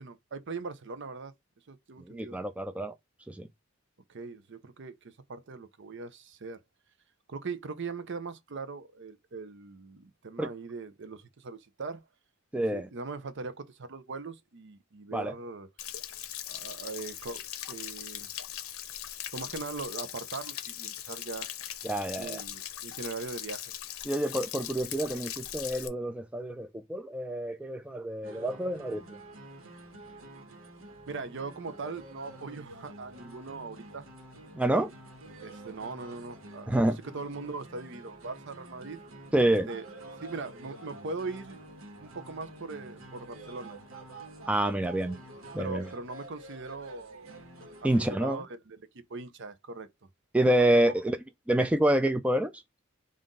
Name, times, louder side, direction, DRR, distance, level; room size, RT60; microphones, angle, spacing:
voice 1, 0.0-1.3 1.7-2.4 4.1-6.6 7.3-12.0 12.5-15.7 16.5-17.4 17.7-18.3 19.3-21.5 22.2-23.7 31.1-34.1 35.4-36.8 37.1-39.0 39.7-39.9 40.2-41.6 42.0-43.8 45.6-47.3 47.8-49.9 50.5-50.9, right 4 dB, 60° right, 0.7 m, -40 dB
voice 2, 2.0-2.9 3.3-3.5 10.4-10.5 12.5-12.9 15.1-15.3 21.8-22.4 24.0-29.0 34.5-34.9 36.7-37.0 39.3-39.7 44.5-45.2 45.5-45.9 47.8-48.4 50.3-51.2 51.5-52.6, right 1 dB, 5° right, 0.3 m, -27 dB
Stream / Splash splatter / Trickle dribble, 15.8-25.9, left 11 dB, 80° left, 0.6 m, -40 dB
sound 1, 28.2-48.2, right 1 dB, 80° right, 1.3 m, -48 dB
5.6 x 2.5 x 3.8 m
head